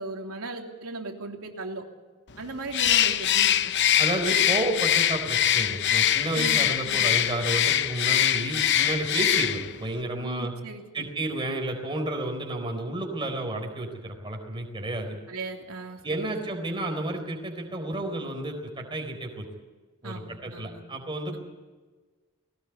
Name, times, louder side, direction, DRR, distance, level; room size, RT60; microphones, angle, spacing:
voice 1, 0.0-1.8 2.4-3.7 6.3-7.1 10.2-11.1 15.3-16.6 20.0-20.8 21.3-21.4, right 2 dB, 85° right, 2 dB, 3.2 m, -38 dB
Bird, 2.7-9.8, left 11 dB, 55° left, 0.7 m, -23 dB
voice 2, 4.0-10.5 10.9-15.2 16.0-19.5 20.0-21.4, right 1 dB, 25° right, 3 dB, 4.0 m, -31 dB
19.5 x 18.0 x 8.4 m, 1.4 s
head